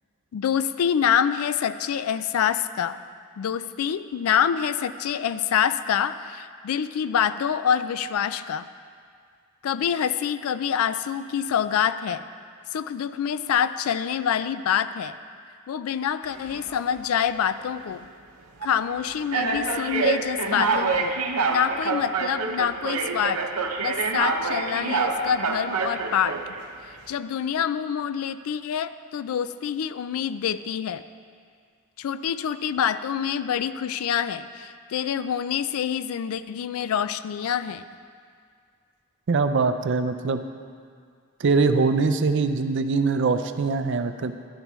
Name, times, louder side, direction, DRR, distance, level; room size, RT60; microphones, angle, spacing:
voice 1, 0.3-3.0 3.4-8.7 9.6-12.2 12.7-15.1 15.7-18.1 18.6-21.2 21.5-23.4 23.8-26.4 26.8-31.0 32.0-37.9, left 8 dB, 75° left, 13 dB, 0.3 m, -26 dB
sound 1, 16.3-16.8 17.6-17.8 18.6-18.7 19.3-26.6, right 4 dB, 90° right, 0.7 m, -27 dB
voice 2, 39.3-40.4 41.4-44.3, right 4 dB, 55° right, 9 dB, 0.5 m, -22 dB
11.5 x 10.5 x 3.1 m, 2.1 s
head